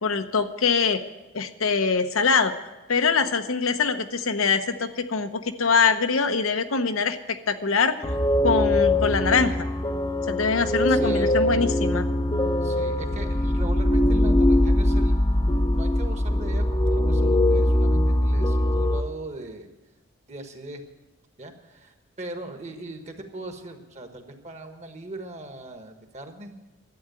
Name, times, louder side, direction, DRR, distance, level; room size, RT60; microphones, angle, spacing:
voice 1, 0.0-1.0 1.3-2.5 2.9-8.0 8.4-9.7 10.3-12.0, left 5 dB, 80° left, 8 dB, 0.9 m, -23 dB
sound 1, 8.0-19.0, left 1 dB, 20° left, 0.7 m, -22 dB
voice 2, 10.9-11.4 12.6-19.7 20.3-20.8 21.4-26.6, right 2 dB, 30° right, 5 dB, 1.3 m, -39 dB
12.0 x 8.6 x 9.0 m, 1.1 s
head